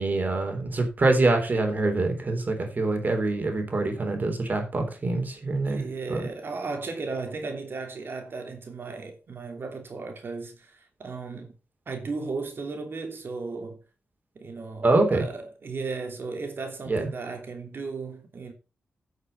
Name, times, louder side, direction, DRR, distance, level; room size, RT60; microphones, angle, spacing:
voice 1, 0.0-6.2 14.8-15.2 16.9-17.0, right 2 dB, 45° right, 3.6 m, -25 dB
voice 2, 5.7-11.5 11.9-13.8 14.3-18.5, right 4 dB, 65° right, 3.0 m, -35 dB
11.0 x 6.5 x 5.5 m
cardioid pair, 75°, 4 cm